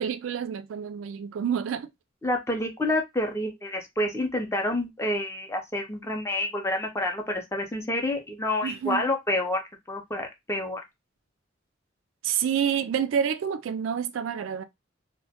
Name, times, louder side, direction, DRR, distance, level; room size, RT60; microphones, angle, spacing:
voice 1, 0.0-1.9 8.6-9.0 12.2-14.6, right 8 dB, 85° right, 0.3 m, -28 dB
voice 2, 2.2-9.6 9.9-10.8, left 1 dB, 15° left, 0.4 m, -28 dB
2.1 x 2.1 x 2.7 m
head